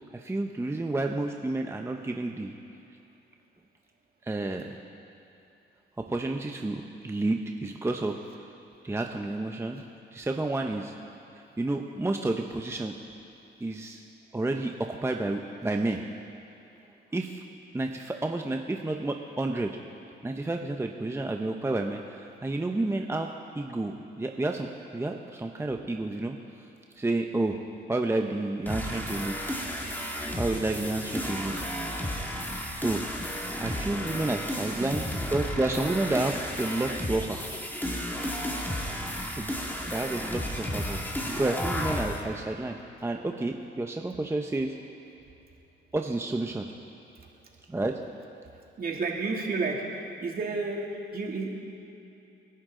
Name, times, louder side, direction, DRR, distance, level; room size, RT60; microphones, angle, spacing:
voice 1, 0.1-2.5 4.3-4.8 6.1-8.2 8.8-9.8 10.1-10.9 11.6-12.9 13.6-14.0 14.3-16.0 17.1-17.4 17.7-19.8 20.2-24.7 24.9-26.4 27.0-27.6 27.9-29.4 30.4-31.5 32.8-33.0 33.6-35.0 35.3-37.4 39.4-39.5 39.9-41.0 41.3-42.8 43.0-44.7 45.9-46.6 47.7-48.0, right 2 dB, 15° right, 3 dB, 0.8 m, -30 dB
sound 1, 28.7-42.2, equal, 10° left, 2.2 m, -33 dB
voice 2, 34.5-34.9 47.2-47.3 48.8-49.8 50.2-51.5, right 4 dB, 50° right, -1 dB, 2.6 m, -31 dB
29.5 x 11.5 x 3.9 m, 2.8 s
cardioid pair, 90°, 20 cm